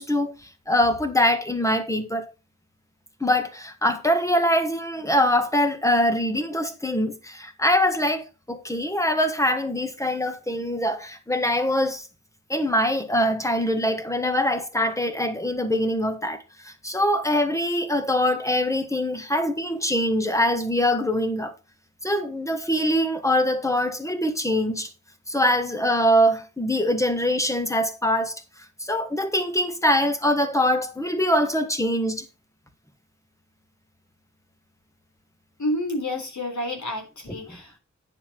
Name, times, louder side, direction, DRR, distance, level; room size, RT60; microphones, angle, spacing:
voice 1, 0.0-2.2 3.2-12.1 12.5-21.5 22.0-24.9 25.3-28.3 28.8-32.2 37.3-37.4, left 1 dB, 10° left, 1.6 m, -23 dB
voice 2, 35.6-37.8, left 1 dB, 75° left, 3.5 m, -29 dB
9.8 x 7.1 x 4.9 m
wide cardioid pair, 95°, 29 cm